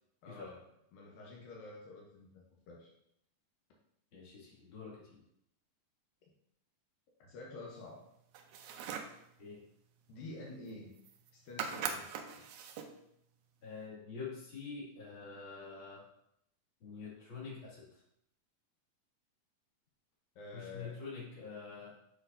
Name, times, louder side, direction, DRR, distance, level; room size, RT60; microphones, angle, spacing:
voice 1, 0.2-2.9 6.2-6.3 7.2-8.0 10.1-10.9 11.3-12.2 20.4-21.0, left 2 dB, 80° left, -2 dB, 2.6 m, -49 dB
voice 2, 4.1-5.2 9.4-9.6 13.6-16.0 16.8-17.9 20.5-21.9, left 5 dB, 40° left, -7 dB, 2.9 m, -46 dB
sound 1, 8.3-9.2 10.7-10.8 11.0-11.3 11.6-13.0, right 7 dB, 80° right, 1.6 m, -41 dB
8.1 x 6.0 x 2.7 m, 0.77 s
omnidirectional pair, 4.0 m